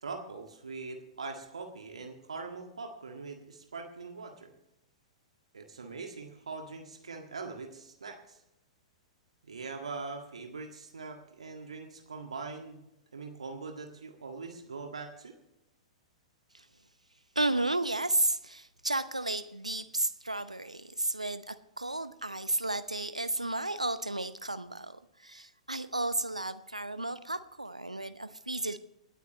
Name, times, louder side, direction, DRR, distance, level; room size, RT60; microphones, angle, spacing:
voice 1, 0.0-4.5 5.5-8.4 9.4-12.8 13.1-15.3, right 4 dB, 75° right, 1.7 m, -42 dB
voice 2, 17.4-28.8, right 2 dB, 90° right, 0.7 m, -33 dB
27.5 x 9.2 x 3.0 m
figure-of-eight pair, 105°, 3 cm